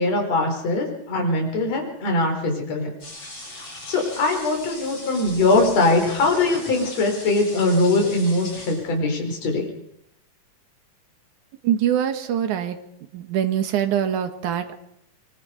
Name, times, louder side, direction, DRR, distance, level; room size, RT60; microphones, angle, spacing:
voice 1, 0.0-2.9 3.2-3.6 3.9-9.6, left 2 dB, 50° left, 2 dB, 5.7 m, -22 dB
sound 1, 3.0-9.1, left 1 dB, 35° left, 7.3 m, -39 dB
voice 2, 11.6-12.8 13.1-14.8, right 9 dB, 65° right, 7 dB, 3.0 m, -23 dB
24.0 x 23.0 x 5.3 m, 0.75 s
omnidirectional pair, 3.9 m